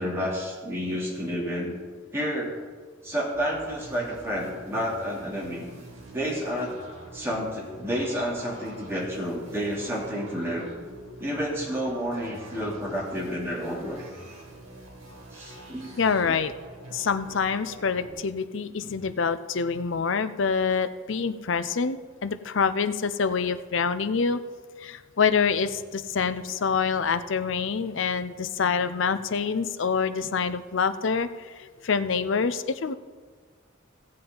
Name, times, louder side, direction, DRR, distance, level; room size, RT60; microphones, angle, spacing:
voice 1, 0.0-1.7 2.1-2.5 3.0-5.6 6.1-6.8 7.1-10.7 11.2-14.0 15.3-15.9, equal, 15° right, -5 dB, 2.9 m, -30 dB
sound 1, 3.3-18.1, right 2 dB, 85° right, 2.6 m, -45 dB
voice 2, 16.0-16.5 16.9-24.4 24.8-32.9, left 5 dB, 65° left, 11 dB, 0.6 m, -26 dB
16.5 x 7.6 x 3.9 m, 1.5 s
head